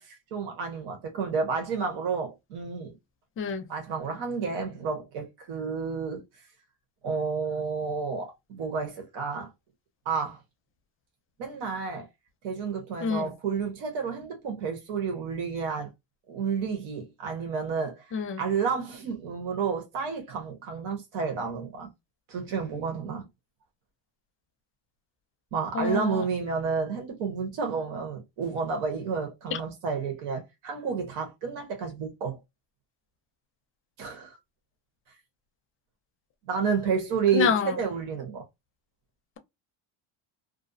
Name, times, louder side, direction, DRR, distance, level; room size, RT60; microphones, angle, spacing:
voice 1, 0.0-3.0 3.7-6.2 7.0-9.5 10.0-10.4 11.4-12.1 12.4-15.9 16.3-18.1 18.4-21.9 22.3-23.3 25.5-32.4 34.0-34.4 36.5-38.4, right 5 dB, 85° right, 1.2 m, -30 dB
voice 2, 13.0-13.3 18.1-18.4 25.7-26.2 37.3-37.8, left 6 dB, 30° left, 0.4 m, -27 dB
2.6 x 2.0 x 2.5 m
cardioid pair, 150°, 46 cm